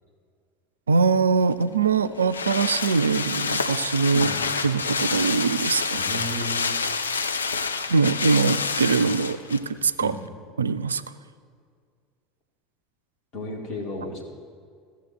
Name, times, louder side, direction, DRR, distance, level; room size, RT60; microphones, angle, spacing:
voice 1, 0.9-4.3 4.6-6.0 7.9-10.1 10.6-11.0, right 4 dB, 80° right, 13 dB, 0.3 m, -22 dB
sound 1, 1.5-9.7 10.0-10.1, left 4 dB, 80° left, 0.4 m, -28 dB
voice 2, 6.0-6.8 10.0-10.2 13.3-14.2, left 1 dB, 50° left, -1 dB, 2.5 m, -33 dB
15.0 x 7.2 x 4.5 m, 2.1 s
figure-of-eight pair, 70°, 0 cm